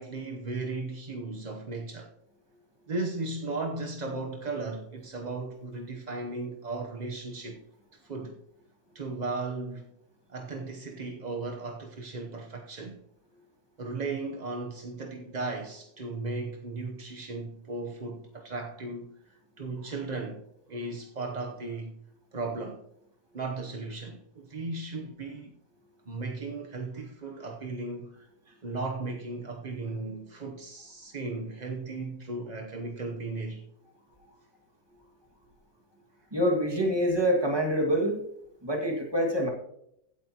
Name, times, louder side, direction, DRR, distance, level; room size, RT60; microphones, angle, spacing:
voice 1, 0.0-2.1 2.9-7.6 8.0-8.4 8.9-9.9 10.3-13.0 13.8-20.4 20.7-22.0 22.3-22.8 23.3-25.5 26.1-33.6, right 3 dB, 40° right, 0.6 m, -36 dB
voice 2, 36.3-38.2 38.6-39.5, equal, 15° right, 1.9 m, -26 dB
16.0 x 8.6 x 2.9 m
omnidirectional pair, 2.0 m